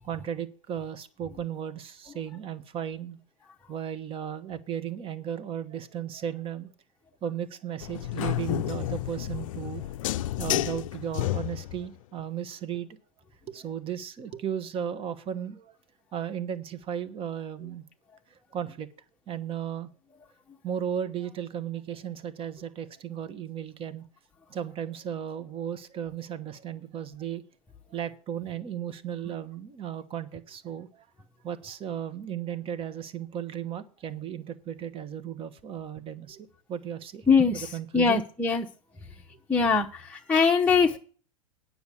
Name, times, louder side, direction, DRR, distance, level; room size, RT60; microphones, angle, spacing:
voice 1, 0.0-3.2 3.7-6.7 7.2-10.0 10.4-12.9 13.5-15.8 16.1-17.8 18.3-18.9 19.3-19.9 20.6-24.1 24.5-27.4 27.9-31.1 31.4-37.3 37.5-38.2, right 9 dB, 30° right, 13 dB, 1.1 m, -35 dB
sound 1, 7.8-11.9, left 14 dB, 65° left, 0.5 m, -31 dB
voice 2, 37.3-37.7 37.9-38.7 39.5-41.0, left 5 dB, 10° left, -2 dB, 0.9 m, -22 dB
9.5 x 6.3 x 8.3 m, 0.40 s
hypercardioid pair, 100°, 18 cm